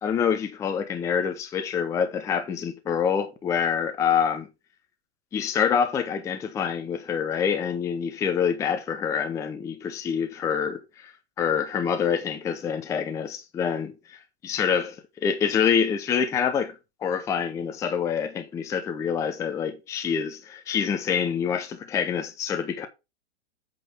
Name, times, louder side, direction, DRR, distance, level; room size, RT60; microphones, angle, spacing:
voice 1, 0.0-4.5 5.3-11.1 11.4-13.9 14.4-16.7 17.0-22.9, left 7 dB, 10° left, 0.5 m, -26 dB
8.1 x 3.8 x 5.7 m
hypercardioid pair, 145°, 35 cm